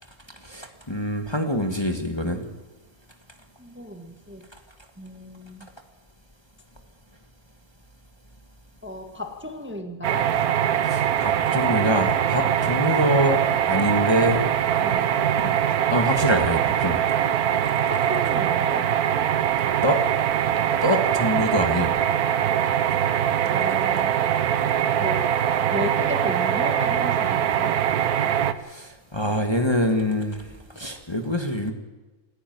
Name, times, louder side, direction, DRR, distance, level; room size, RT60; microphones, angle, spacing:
voice 1, 0.4-2.4 10.9-13.4 13.7-14.4 15.4-17.0 19.8-20.0 20.8-21.9 28.7-30.4 30.7-31.7, equal, 20° left, 4 dB, 1.6 m, -24 dB
voice 2, 3.6-4.4 5.0-5.7 8.8-10.3 14.8-15.1 17.9-18.9 23.5-24.1 24.5-24.6 25.0-25.3 25.7-27.8, left 1 dB, 10° right, 4 dB, 1.5 m, -34 dB
sound 1, 10.0-28.5, right 10 dB, 80° right, 1.3 m, -22 dB
28.0 x 10.0 x 9.4 m, 1.2 s
omnidirectional pair, 1.6 m